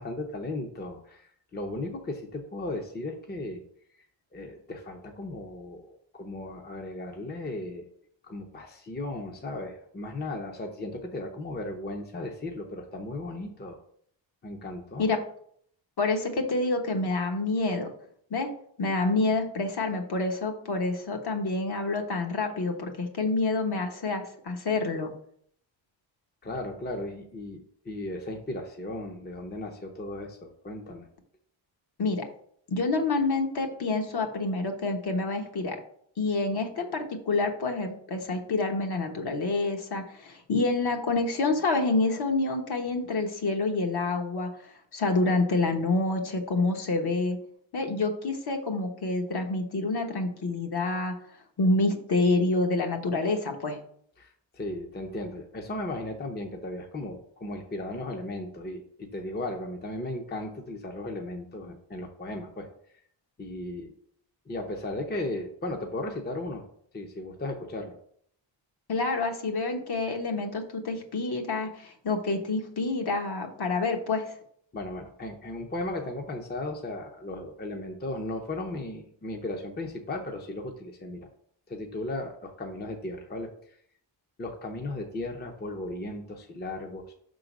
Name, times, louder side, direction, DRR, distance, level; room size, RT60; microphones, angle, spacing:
voice 1, 0.0-3.6 4.0-4.1 4.3-7.9 8.2-13.8 14.4-15.1 26.4-31.1 54.2-62.7 63.4-63.9 64.5-66.6 66.9-68.0 74.7-81.3 81.7-83.8 84.4-87.1, left 2 dB, 20° left, 3 dB, 0.7 m, -36 dB
voice 2, 16.0-17.9 18.3-18.5 18.8-25.1 32.0-32.2 32.7-35.8 36.2-44.5 44.9-47.4 47.7-51.1 51.6-53.8 68.9-74.3, left 3 dB, 55° left, 3 dB, 1.2 m, -27 dB
6.0 x 3.8 x 6.0 m, 0.63 s
wide cardioid pair, 175°, 46 cm